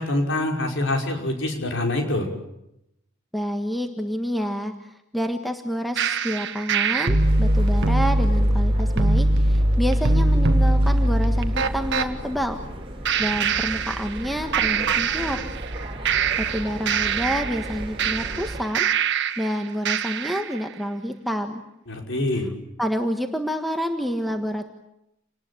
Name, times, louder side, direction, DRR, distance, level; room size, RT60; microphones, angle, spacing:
voice 1, 0.0-2.3 21.9-22.5, left 2 dB, 55° left, 2 dB, 5.5 m, -25 dB
voice 2, 3.3-4.7 5.1-12.6 13.2-15.4 16.4-18.9 19.4-21.6 22.8-24.7, equal, ahead, 5 dB, 1.5 m, -28 dB
sound 1, 6.0-12.1 13.1-14.3 14.5-15.8 16.1-19.5 19.9-20.5, right 2 dB, 55° right, 1.6 m, -21 dB
sound 2, 7.2-18.6, right 1 dB, 25° right, 3.6 m, -36 dB
28.5 x 20.0 x 8.7 m, 0.82 s
head